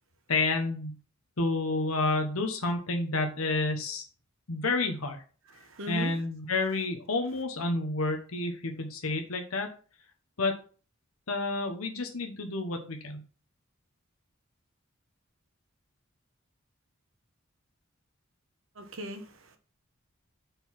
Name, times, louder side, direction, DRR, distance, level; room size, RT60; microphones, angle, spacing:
voice 1, 0.3-1.0 1.4-4.0 4.5-5.2 5.9-9.7 10.4-10.6 11.3-13.2, left 3 dB, 85° left, 1.2 m, -30 dB
voice 2, 5.5-6.1 18.8-19.6, right 1 dB, 65° right, 1.2 m, -39 dB
5.3 x 4.6 x 5.8 m
head